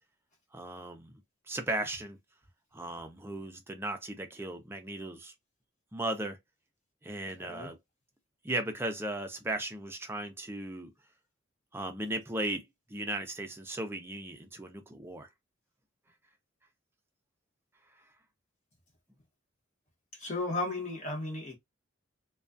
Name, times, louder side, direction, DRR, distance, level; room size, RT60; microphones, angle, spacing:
voice 1, 0.5-1.1 1.5-2.2 2.7-5.3 5.9-6.4 7.0-7.8 8.4-10.9 11.7-12.6 12.9-15.3, right 1 dB, 10° right, 0.4 m, -36 dB
voice 2, 7.4-7.7 20.1-21.6, left 2 dB, 35° left, 0.9 m, -34 dB
2.3 x 2.3 x 2.4 m
head